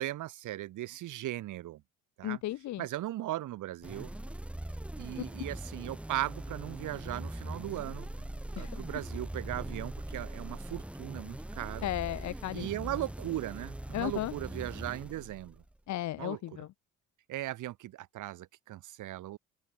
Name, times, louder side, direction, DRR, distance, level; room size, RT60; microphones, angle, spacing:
voice 1, 0.0-1.8 2.2-2.4 2.8-4.1 5.0-8.3 8.6-11.9 12.5-15.6 16.2-16.4 17.3-19.4, right 15 dB, 50° right, 1.7 m, -38 dB
voice 2, 2.2-2.9 8.6-9.0 11.8-12.9 13.9-14.3 15.9-16.7, left 14 dB, 45° left, 1.0 m, -35 dB
sound 1, 3.8-15.8, right 1 dB, 5° right, 0.7 m, -41 dB
figure-of-eight pair, 50°, 40 cm